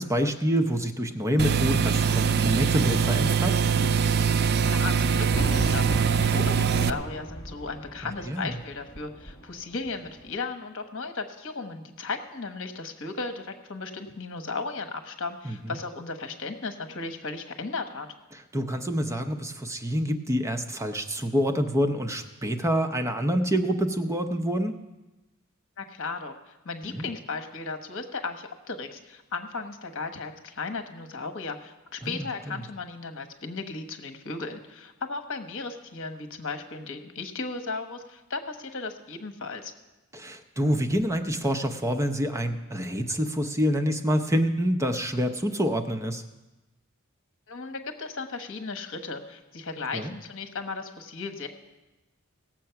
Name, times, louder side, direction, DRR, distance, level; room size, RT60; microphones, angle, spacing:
voice 1, 0.0-3.6 8.0-8.6 15.4-15.8 18.3-24.7 26.8-27.1 32.0-32.6 40.1-46.2 49.9-50.1, equal, 15° right, 6 dB, 0.7 m, -27 dB
sound 1, 1.4-6.9, right 6 dB, 50° right, 0.4 m, -23 dB
voice 2, 4.6-18.1 25.8-39.7 47.5-51.5, left 4 dB, 65° left, 7 dB, 1.2 m, -36 dB
Fireworks, 5.3-10.4, right 1 dB, 25° left, 1.3 m, -36 dB
18.0 x 7.5 x 5.8 m, 1.1 s
head